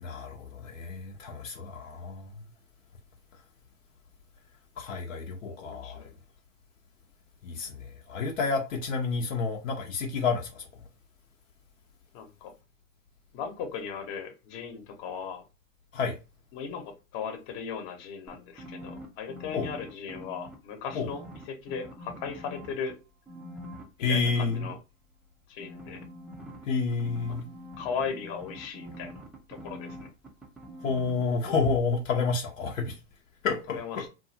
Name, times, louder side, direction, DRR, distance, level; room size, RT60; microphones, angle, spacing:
voice 1, 0.0-2.3 4.8-6.1 7.4-10.6 15.9-16.1 19.5-19.7 20.9-21.1 24.0-24.7 26.7-27.5 30.8-33.0 33.4-34.1, left 4 dB, 70° left, 0.8 m, -29 dB
voice 2, 5.5-6.2 12.1-12.5 13.3-15.4 16.5-16.8 17.1-23.0 24.1-24.8 25.5-26.0 27.8-29.1 29.5-30.1 33.7-34.1, left 6 dB, 45° left, 1.0 m, -37 dB
sound 1, 18.3-20.5 20.9-22.9 23.3-24.7 25.6-31.2 31.5-31.7, equal, ahead, 0.4 m, -44 dB
2.6 x 2.4 x 2.7 m
hypercardioid pair, 105°, 40 cm